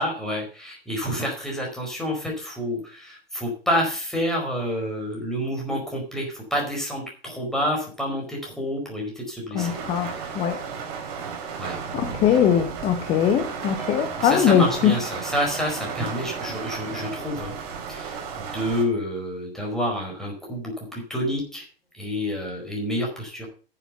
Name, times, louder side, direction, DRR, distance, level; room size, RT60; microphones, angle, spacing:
voice 1, 0.0-9.8 10.0-10.2 11.6-11.8 14.2-17.5 17.9-21.6 22.0-23.5, equal, ahead, 4.6 m, -28 dB
voice 2, 9.5-10.6 11.9-15.0, left 9 dB, 20° left, 1.0 m, -21 dB
sound 1, 9.6-18.8, right 6 dB, 40° right, 3.7 m, -33 dB
10.0 x 7.3 x 6.9 m
figure-of-eight pair, 105°, 30 cm